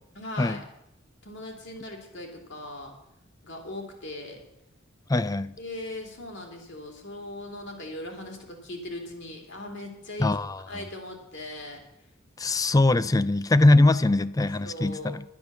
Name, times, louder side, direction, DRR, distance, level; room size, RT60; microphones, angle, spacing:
voice 1, 0.1-0.6 1.2-2.9 3.4-4.4 5.6-10.3 10.7-11.8 13.7-14.0 14.6-15.2, left 1 dB, 60° left, 3.0 m, -39 dB
voice 2, 5.1-5.6 10.2-10.9 12.4-15.2, left 2 dB, 15° left, 0.4 m, -22 dB
11.0 x 10.5 x 6.9 m
head